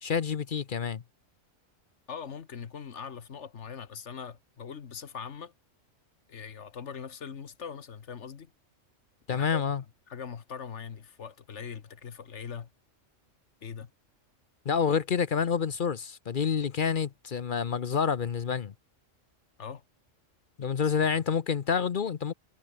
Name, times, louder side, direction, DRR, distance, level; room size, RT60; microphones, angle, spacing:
voice 1, 0.0-1.0 9.3-9.8 14.7-18.7 20.6-22.3, left 6 dB, 50° left, 0.8 m, -28 dB
voice 2, 2.1-5.5 6.3-8.5 9.3-9.6 10.1-12.7 13.6-13.9 19.6-19.8 21.1-21.2, left 7 dB, 65° left, 1.5 m, -41 dB
omnidirectional pair, 1.3 m